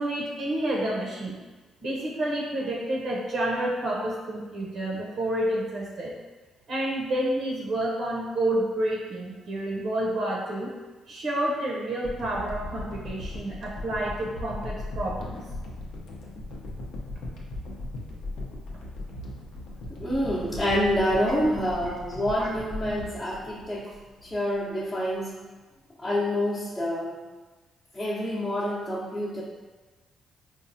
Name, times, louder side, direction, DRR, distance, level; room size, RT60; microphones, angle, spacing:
voice 1, 0.0-1.4 1.8-6.1 6.7-10.7 11.1-15.4 22.4-22.5, right 1 dB, 65° right, -4 dB, 0.8 m, -29 dB
sound 1, 12.0-24.3 24.8-24.9, left 2 dB, 80° left, 0.7 m, -38 dB
voice 2, 20.0-23.9 24.2-25.4 26.0-27.2 27.9-29.4, equal, 20° left, -9 dB, 0.8 m, -27 dB
4.5 x 2.3 x 2.6 m, 1.2 s
cardioid pair, 90°, 0 cm